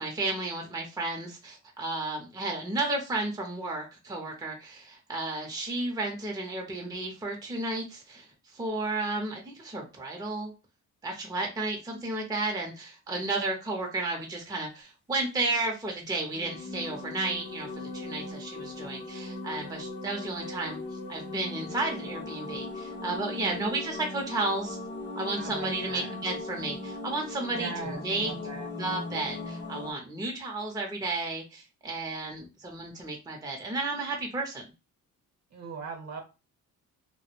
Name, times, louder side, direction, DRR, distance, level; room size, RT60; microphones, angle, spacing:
voice 1, 0.0-10.5 11.0-24.8 25.2-28.3 28.8-34.7, right 2 dB, 10° right, 1 dB, 0.6 m, -33 dB
sound 1, 16.3-29.9, left 2 dB, 30° left, 0.6 m, -38 dB
voice 2, 25.4-26.2 27.5-28.7 35.5-36.2, right 5 dB, 45° right, 4 dB, 0.8 m, -40 dB
2.1 x 2.1 x 3.0 m, 0.30 s
cardioid pair, 75°, 37 cm